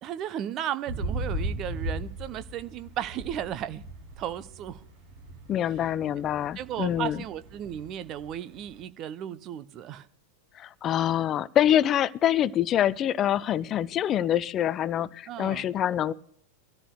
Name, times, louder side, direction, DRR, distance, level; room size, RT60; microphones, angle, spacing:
voice 1, 0.0-3.8 4.2-4.8 6.6-10.1 15.3-15.7, right 10 dB, 35° right, 13 dB, 0.6 m, -35 dB
sound 1, 0.9-8.8, right 1 dB, 50° right, 2.9 m, -37 dB
voice 2, 5.5-7.2 10.6-16.1, left 11 dB, 30° left, 20 dB, 0.4 m, -25 dB
23.5 x 13.5 x 2.2 m, 0.67 s
figure-of-eight pair, 90°, 0 cm